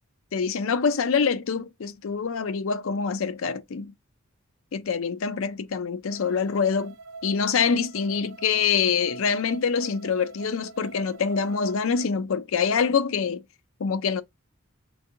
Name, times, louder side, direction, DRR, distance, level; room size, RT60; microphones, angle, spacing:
voice 1, 0.3-3.9 4.7-6.9 7.2-13.4 13.8-14.2, left 6 dB, 70° left, 0.5 m, -25 dB
sound 1, 6.1-12.1, right 4 dB, 90° right, 0.5 m, -45 dB
3.4 x 3.1 x 2.6 m
head